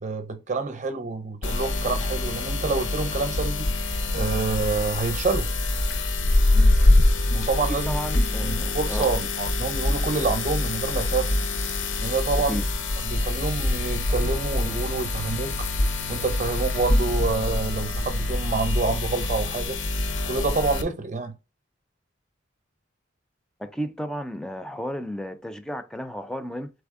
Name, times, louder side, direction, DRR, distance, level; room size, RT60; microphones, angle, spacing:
voice 1, 0.0-3.6 4.1-5.5 7.3-7.9 8.4-11.3 12.0-12.6 13.0-15.6 16.1-19.8 20.2-21.3, right 4 dB, 35° right, 0.6 m, -27 dB
sound 1, 1.4-20.8, left 2 dB, 70° left, 0.7 m, -24 dB
voice 2, 7.7-9.3 12.5-12.7 23.6-26.7, equal, 5° left, 0.3 m, -33 dB
3.9 x 3.4 x 3.6 m
head